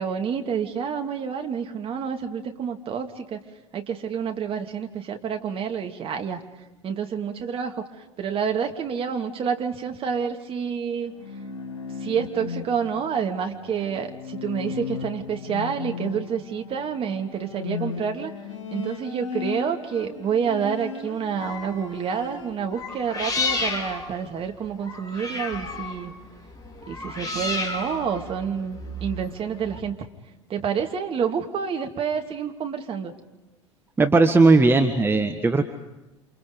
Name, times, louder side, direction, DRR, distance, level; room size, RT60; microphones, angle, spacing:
voice 1, 0.0-3.4 3.7-6.4 6.8-7.8 8.2-11.1 12.0-18.3 18.7-26.1 26.9-29.9 30.5-33.1, right 7 dB, 35° right, 4 dB, 2.8 m, -28 dB
Bowed string instrument, 11.0-22.8 23.1-23.9, left 6 dB, 75° left, 3.4 m, -36 dB
sound 1, 21.4-22.0 22.7-29.8, left 3 dB, 25° left, 5.0 m, -32 dB
voice 2, 34.0-35.6, right 3 dB, 15° right, 6 dB, 1.7 m, -17 dB
29.5 x 27.5 x 5.3 m, 1.0 s
figure-of-eight pair, 70°, 16 cm